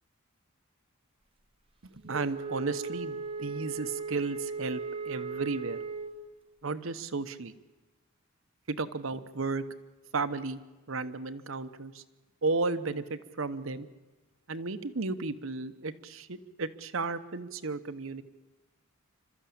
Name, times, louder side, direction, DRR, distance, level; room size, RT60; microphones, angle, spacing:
voice 1, 1.8-5.8 6.6-7.5 8.7-9.6 10.1-10.6 10.9-12.0 12.4-13.9 14.5-18.2, right 3 dB, 65° right, 11 dB, 0.9 m, -34 dB
Wind instrument woodwind instrument, 2.1-6.2, right 4 dB, 25° right, 1.1 m, -37 dB
27.5 x 13.0 x 8.7 m, 1.2 s
head